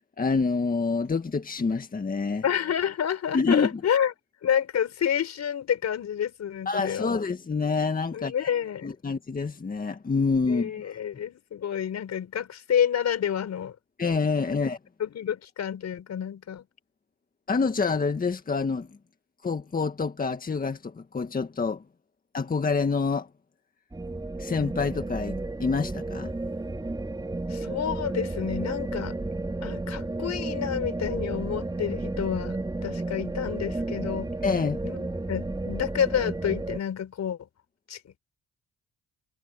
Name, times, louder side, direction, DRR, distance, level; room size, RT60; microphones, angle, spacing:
voice 1, 0.2-2.4 3.3-3.7 6.7-8.5 8.8-11.0 14.0-14.8 17.5-19.0 19.4-21.8 22.3-23.3 24.4-26.3 34.4-34.8, left 4 dB, 30° left, 1.8 m, -27 dB
voice 2, 2.4-4.1 4.4-7.2 8.1-8.9 10.5-13.7 14.5-14.6 15.0-16.6 27.5-29.2 29.6-32.6 32.8-34.3 34.8-35.0 35.3-37.5 37.9-38.0, left 9 dB, 60° left, 5.0 m, -29 dB
sound 1, 23.9-36.8, right 2 dB, 15° right, 3.8 m, -32 dB
cardioid pair, 90°, 30 cm